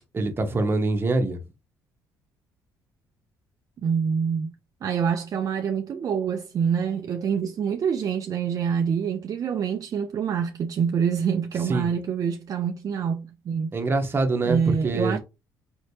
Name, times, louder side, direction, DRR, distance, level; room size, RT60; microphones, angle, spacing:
voice 1, 0.1-1.4 11.7-11.9 13.7-15.2, right 2 dB, 30° right, 1.1 m, -24 dB
voice 2, 3.8-4.5 4.8-13.7 14.4-15.2, right 7 dB, 50° right, 0.5 m, -26 dB
4.4 x 3.2 x 2.8 m
cardioid pair, 90°, 8 cm